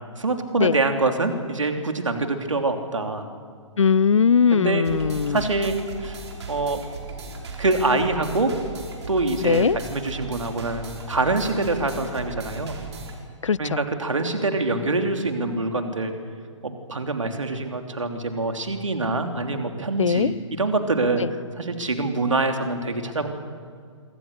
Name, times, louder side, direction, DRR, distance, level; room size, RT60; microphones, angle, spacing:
voice 1, 0.2-3.2 4.5-4.8 5.3-6.2 6.5-6.8 7.6-8.5 9.1-12.8 13.6-16.1 16.6-23.3, right 2 dB, 75° right, 3.3 m, -25 dB
voice 2, 3.8-5.4 9.4-9.8 13.4-13.8 20.0-20.3 21.2-21.3, left 6 dB, 75° left, 0.6 m, -20 dB
sound 1, 4.8-13.2, right 3 dB, 60° right, 5.1 m, -37 dB
26.5 x 24.0 x 6.8 m
figure-of-eight pair, 125°, 16 cm